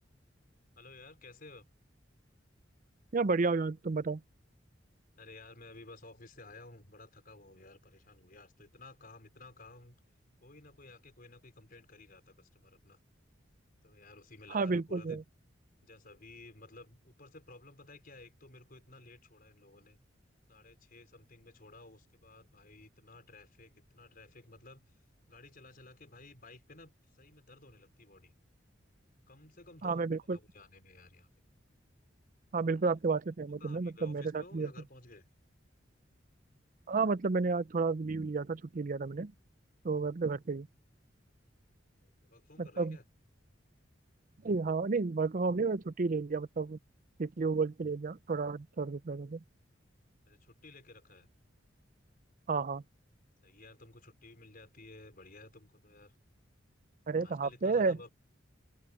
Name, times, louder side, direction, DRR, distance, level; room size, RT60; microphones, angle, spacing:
voice 1, 0.7-1.7 5.2-10.0 10.4-13.0 13.8-15.2 15.8-20.0 20.5-24.9 25.3-28.3 29.3-30.1 30.3-31.3 32.6-32.8 33.6-35.3 42.0-43.0 50.3-51.3 53.4-56.2 57.2-58.1, left 2 dB, 50° left, 4.8 m, -54 dB
voice 2, 3.1-4.2 14.5-15.2 29.8-30.4 32.5-34.7 36.9-39.3 39.8-40.7 42.6-43.0 44.4-46.8 47.2-49.4 52.5-52.8 57.1-58.0, right 4 dB, 45° right, 0.5 m, -31 dB
open air
head